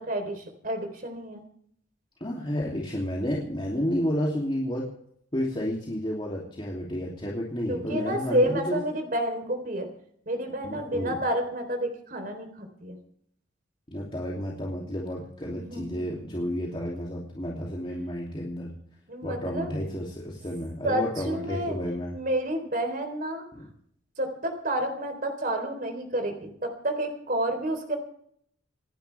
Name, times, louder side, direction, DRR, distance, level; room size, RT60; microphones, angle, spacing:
voice 1, 0.0-1.4 7.7-9.9 10.3-13.0 15.5-16.6 19.1-19.7 20.8-21.8 22.1-23.4 24.2-28.0, right 1 dB, 45° right, 5 dB, 3.8 m, -30 dB
voice 2, 2.2-4.9 5.3-8.9 10.6-11.1 13.9-18.7 19.2-22.1 23.5-23.6, equal, 25° left, -4 dB, 2.9 m, -31 dB
27.5 x 11.5 x 3.5 m, 0.66 s
head